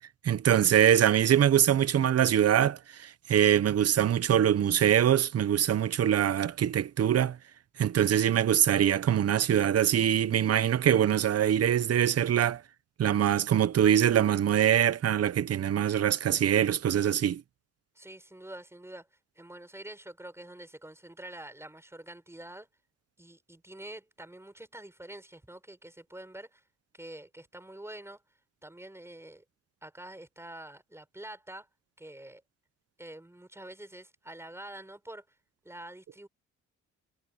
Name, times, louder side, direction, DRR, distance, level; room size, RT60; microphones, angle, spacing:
voice 1, 0.2-7.4 7.8-12.6 13.0-17.4, right 10 dB, 55° right, 1.1 m, -24 dB
voice 2, 17.9-19.1 19.4-22.7 23.2-26.6 26.9-28.2 28.6-29.4 29.8-31.7 32.0-32.4 33.0-35.2 35.6-36.3, right 1 dB, 10° right, 7.7 m, -46 dB
cardioid pair, 90°, 30 cm